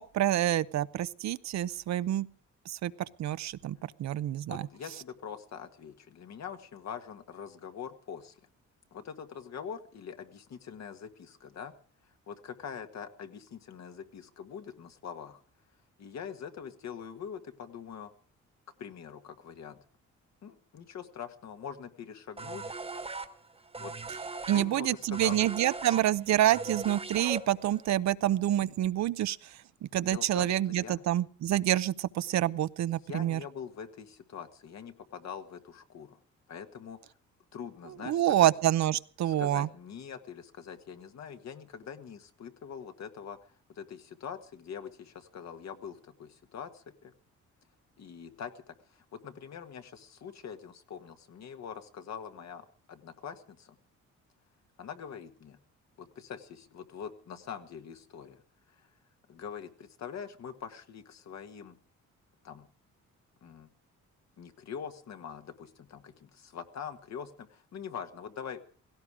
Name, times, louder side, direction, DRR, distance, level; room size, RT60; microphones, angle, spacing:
voice 1, 0.0-2.3 2.7-2.9 3.2-4.7 24.5-29.6 29.9-33.4 38.0-39.7, right 12 dB, 65° right, 0.7 m, -27 dB
voice 2, 4.5-8.4 8.9-11.7 12.3-15.4 16.0-18.1 18.8-19.8 20.4-22.8 23.8-23.9 24.5-25.4 30.0-31.0 33.1-36.2 36.5-37.0 37.5-38.5 39.2-43.4 43.7-47.1 48.0-53.7 54.8-55.6 56.0-58.4 58.8-58.9 59.3-61.7 62.4-62.7 63.4-63.7 64.4-68.6, left 7 dB, 60° left, 1.7 m, -43 dB
sound 1, 22.4-27.9, right 3 dB, 20° right, 1.3 m, -39 dB
17.0 x 16.0 x 4.9 m
cardioid pair, 90°, 30 cm